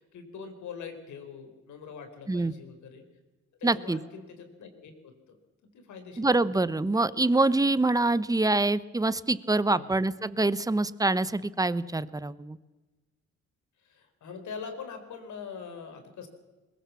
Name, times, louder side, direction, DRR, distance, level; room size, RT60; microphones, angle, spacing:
voice 1, 0.0-3.0 3.6-5.4 5.6-6.4 9.7-10.0 13.8-16.3, left 6 dB, 75° left, 7 dB, 4.4 m, -43 dB
voice 2, 3.6-4.0 6.2-12.6, right 2 dB, 10° right, 16 dB, 0.9 m, -25 dB
22.0 x 21.0 x 7.1 m, 1.2 s
cardioid pair, 90°, 30 cm